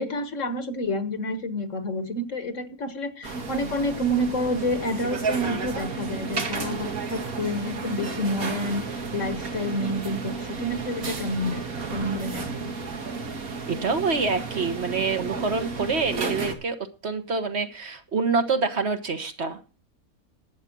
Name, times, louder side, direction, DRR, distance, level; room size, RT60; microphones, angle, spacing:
voice 1, 0.0-8.8 9.1-11.6 11.9-12.7, equal, 60° left, 10 dB, 1.7 m, -29 dB
sound 1, 3.2-16.5, right 4 dB, 85° right, 2.2 m, -32 dB
voice 2, 13.7-16.8 17.0-19.6, right 4 dB, 50° right, 7 dB, 1.5 m, -26 dB
12.0 x 8.3 x 6.1 m, 0.34 s
omnidirectional pair, 1.5 m